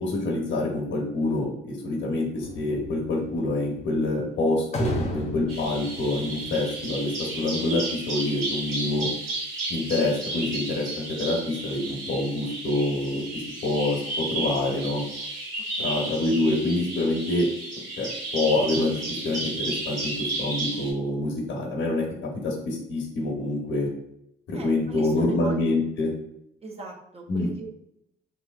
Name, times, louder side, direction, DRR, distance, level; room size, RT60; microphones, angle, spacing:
voice 1, 0.0-9.1 9.7-15.0 15.8-17.5 18.0-23.9 24.5-26.1 27.3-27.5, left 2 dB, 70° left, 1 dB, 0.9 m, -26 dB
sound 1, 2.4-7.4, equal, 35° left, 0.6 m, -35 dB
Bird vocalization bird call bird song, 5.5-20.9, right 2 dB, 85° right, 1.5 m, -33 dB
voice 2, 15.7-16.1 24.5-25.8 26.6-27.7, right 3 dB, 30° right, 0 dB, 0.5 m, -39 dB
3.2 x 2.8 x 2.4 m, 0.80 s
cardioid pair, 90°, 20 cm